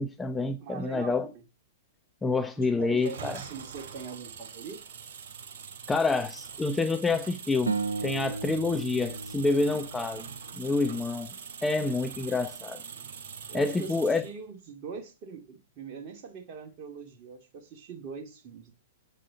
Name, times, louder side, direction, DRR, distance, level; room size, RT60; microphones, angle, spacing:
voice 1, 0.0-1.3 2.2-3.4 5.9-7.7 8.0-10.2 10.5-11.3 11.6-12.8 13.5-14.2, left 3 dB, 10° left, 0.9 m, -27 dB
voice 2, 0.6-1.4 2.6-4.8 13.5-18.7, right 5 dB, 40° right, 2.3 m, -42 dB
sound 1, 3.0-14.4, right 6 dB, 55° right, 2.8 m, -43 dB
sound 2, 7.7-10.9, right 4 dB, 85° right, 1.2 m, -35 dB
8.4 x 7.5 x 5.2 m
figure-of-eight pair, 105°, 0 cm